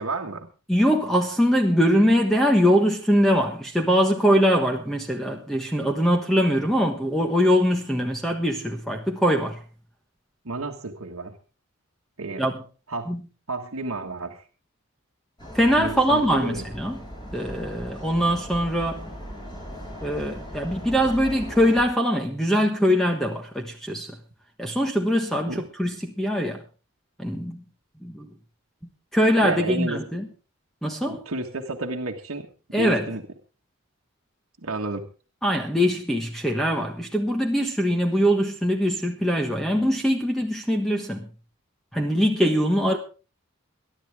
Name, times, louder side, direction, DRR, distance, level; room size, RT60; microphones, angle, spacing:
voice 1, 0.0-0.5 10.4-11.4 12.2-12.4 12.9-13.1 13.5-14.5 15.7-16.7 25.4-25.7 29.4-30.0 31.1-33.2 34.6-35.0, right 3 dB, 80° right, 1.6 m, -31 dB
voice 2, 0.7-9.6 12.4-12.6 13.1-13.2 15.5-17.0 17.3-19.1 20.0-24.2 24.6-26.6 27.2-27.6 28.0-28.3 29.1-30.3 30.8-31.2 32.7-33.1 35.4-41.3 41.9-43.0, equal, ahead, 1.3 m, -22 dB
sound 1, 15.4-21.8, equal, 20° left, 5.6 m, -38 dB
22.0 x 11.5 x 3.5 m
head